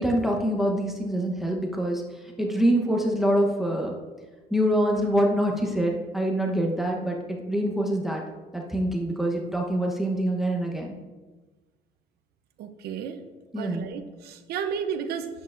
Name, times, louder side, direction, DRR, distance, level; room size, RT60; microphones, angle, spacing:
voice 1, 0.0-2.0 2.4-3.9 4.5-8.2 8.5-11.0 13.5-13.9, equal, ahead, 0 dB, 1.0 m, -25 dB
voice 2, 12.6-13.2 13.6-15.3, right 7 dB, 70° right, 8 dB, 0.8 m, -32 dB
10.0 x 8.1 x 2.6 m, 1.2 s
cardioid pair, 110°, 17 cm